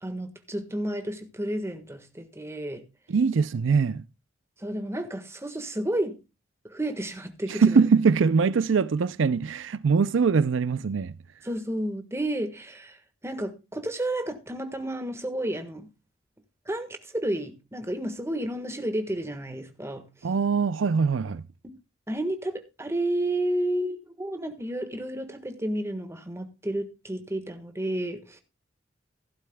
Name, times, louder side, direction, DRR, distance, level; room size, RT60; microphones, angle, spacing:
voice 1, 0.0-2.8 4.6-6.2 6.7-7.8 11.4-15.9 16.6-20.1 21.6-21.7 22.1-28.4, right 1 dB, 15° right, 1.5 m, -31 dB
voice 2, 3.1-4.0 7.5-11.1 20.2-21.4, right 5 dB, 75° right, 0.5 m, -22 dB
15.5 x 12.0 x 2.2 m
head